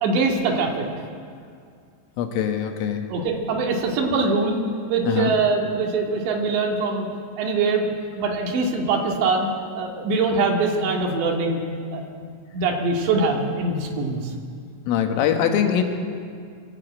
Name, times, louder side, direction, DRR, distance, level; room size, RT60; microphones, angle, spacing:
voice 1, 0.0-0.8 3.1-4.6 4.9-7.1 7.4-7.9 8.2-9.5 9.8-11.6 11.9-14.3, right 3 dB, 65° right, 0 dB, 4.2 m, -23 dB
voice 2, 2.2-3.1 5.1-5.3 14.9-15.8, left 8 dB, 90° left, 4 dB, 4.0 m, -22 dB
22.5 x 14.5 x 8.8 m, 2.2 s
omnidirectional pair, 5.7 m